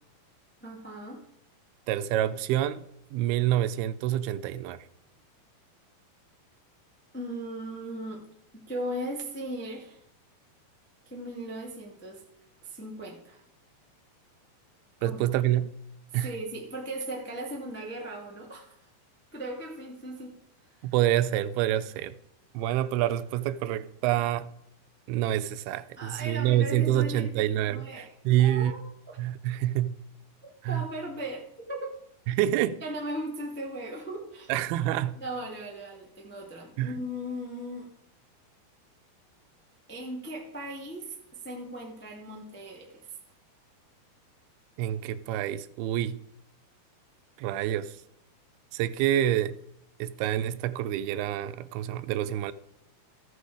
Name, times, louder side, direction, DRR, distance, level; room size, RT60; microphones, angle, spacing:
voice 1, 0.6-1.2 7.1-8.2 8.5-10.0 11.0-12.2 12.6-13.4 15.0-15.2 16.1-18.8 19.3-20.3 20.8-20.9 26.0-29.2 30.4-32.0 32.8-34.5 35.2-37.9 39.9-43.1, right 1 dB, 10° left, 0.6 m, -38 dB
voice 2, 1.9-2.8 3.1-4.8 15.0-15.7 16.1-16.3 20.8-22.2 22.5-24.5 25.1-28.7 29.2-30.0 30.6-30.9 32.3-32.8 34.5-35.2 36.8-36.9 44.8-46.2 47.4-48.0 48.7-49.5 50.0-52.5, right 12 dB, 85° right, 2.5 m, -27 dB
14.5 x 8.1 x 4.9 m
omnidirectional pair, 4.5 m